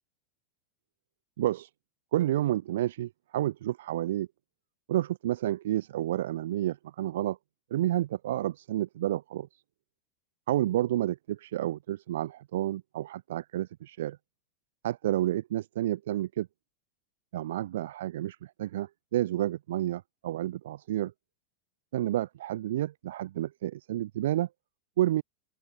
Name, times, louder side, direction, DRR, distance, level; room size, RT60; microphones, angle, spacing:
voice 1, 1.4-1.7 2.1-4.3 4.9-7.4 7.7-9.6 10.5-14.2 14.8-16.5 17.3-21.1 21.9-24.5 25.0-25.2, right 13 dB, 80° right, 0.3 m, -30 dB
open air
supercardioid pair, 155°, 0 cm